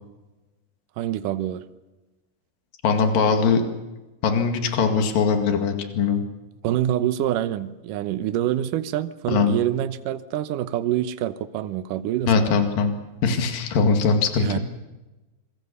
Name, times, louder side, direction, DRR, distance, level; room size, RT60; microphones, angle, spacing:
voice 1, 1.0-1.6 6.6-12.4 14.4-14.6, right 12 dB, 75° right, 12 dB, 2.5 m, -26 dB
voice 2, 2.8-3.7 4.2-6.2 9.3-9.5 12.3-12.9 13.2-14.6, left 5 dB, 75° left, 5 dB, 3.8 m, -21 dB
26.5 x 24.0 x 7.0 m, 1.1 s
omnidirectional pair, 4.0 m